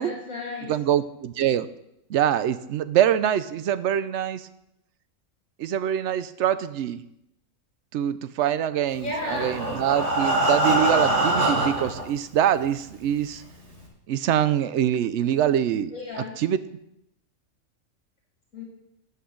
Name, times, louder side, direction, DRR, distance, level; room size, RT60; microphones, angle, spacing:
voice 1, 0.0-0.7 9.0-9.5 15.9-16.3 18.5-18.6, left 2 dB, 75° left, -3 dB, 2.4 m, -33 dB
voice 2, 0.7-1.7 2.1-4.5 5.6-7.0 7.9-13.4 14.1-15.9 16.2-16.6, right 10 dB, 65° right, 14 dB, 0.8 m, -24 dB
Breathing, 9.1-12.0 12.8-12.9 13.3-13.4 13.8-13.9, right 1 dB, 50° right, 2.1 m, -23 dB
13.0 x 8.4 x 3.8 m, 0.82 s
omnidirectional pair, 1.4 m